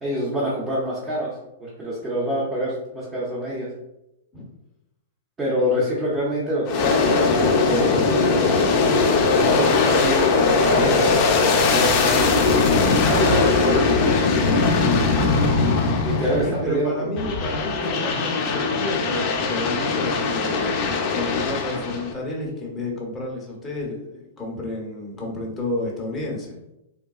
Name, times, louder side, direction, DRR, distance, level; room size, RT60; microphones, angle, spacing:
voice 1, 0.0-1.3 1.6-3.7 5.4-8.1 9.4-10.4 10.6-12.4 12.9-15.2 16.0-17.1, equal, 15° right, -6 dB, 0.7 m, -26 dB
Aircraft, 6.7-16.7 17.2-22.1, left 4 dB, 40° left, 0.5 m, -20 dB
voice 2, 16.4-20.8 21.1-26.6, left 2 dB, 15° left, -3 dB, 0.9 m, -31 dB
3.7 x 2.1 x 2.3 m, 0.88 s
hypercardioid pair, 140°, 0 cm